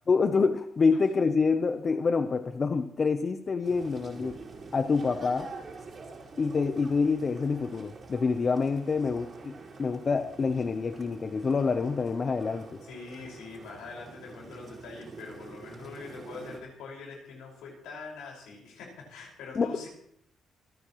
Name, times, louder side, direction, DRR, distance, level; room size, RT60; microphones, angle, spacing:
voice 1, 0.1-4.4 4.7-5.5 6.4-12.7 19.5-19.7, left 4 dB, 40° left, 9 dB, 0.7 m, -27 dB
sound 1, 3.6-16.6, right 4 dB, 45° right, 4.8 m, -46 dB
voice 2, 12.8-19.9, left 4 dB, 90° left, -2 dB, 5.3 m, -44 dB
27.0 x 9.8 x 3.1 m, 0.70 s
cardioid pair, 90°, 0 cm